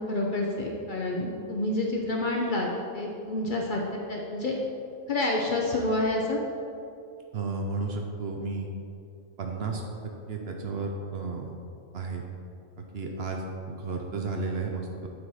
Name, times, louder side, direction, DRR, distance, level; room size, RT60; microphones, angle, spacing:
voice 1, 0.0-4.6 5.1-6.4, left 2 dB, 50° left, -1 dB, 0.6 m, -28 dB
voice 2, 7.3-8.7 9.4-9.8 10.3-11.5 11.9-12.2 12.9-15.1, right 3 dB, 60° right, 2 dB, 0.8 m, -33 dB
7.7 x 4.2 x 4.6 m, 2.6 s
omnidirectional pair, 1.4 m